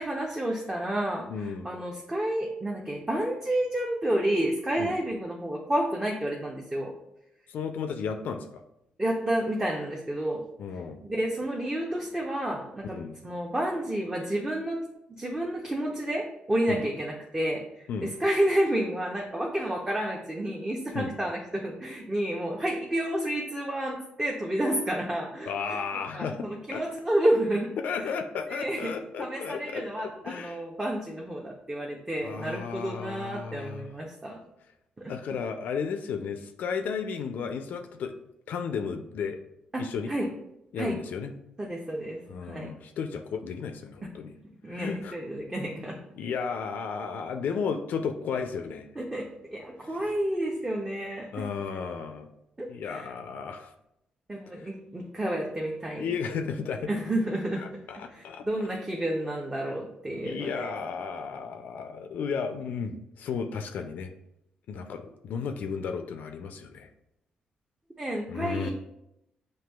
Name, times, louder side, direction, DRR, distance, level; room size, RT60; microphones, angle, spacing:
voice 1, 0.0-6.9 9.0-10.4 11.0-13.0 13.2-14.8 15.1-17.6 18.0-25.8 26.1-27.7 28.5-28.9 29.2-34.4 35.0-35.1 39.7-39.8 40.1-40.3 40.8-41.0 41.6-42.7 44.6-46.0 49.0-51.5 52.6-53.1 54.3-56.1 56.9-57.6 58.1-60.7 68.0-68.7, right 1 dB, 20° right, -1 dB, 0.6 m, -30 dB
voice 2, 1.3-1.7 4.8-4.9 7.5-8.5 10.6-11.0 12.8-13.1 16.7-16.8 17.9-18.1 20.9-21.1 25.5-26.8 27.8-29.8 30.3-30.6 32.2-33.9 35.1-38.1 38.5-39.4 39.8-40.1 40.7-41.3 42.3-44.3 44.7-45.2 46.1-48.9 49.8-49.9 51.3-52.3 52.7-53.7 54.6-54.7 56.0-56.9 57.6-58.4 60.2-64.1 64.7-66.9 68.3-68.7, left 6 dB, 70° left, 6 dB, 0.3 m, -34 dB
5.9 x 2.6 x 2.2 m, 0.83 s
cardioid pair, 80°, 3 cm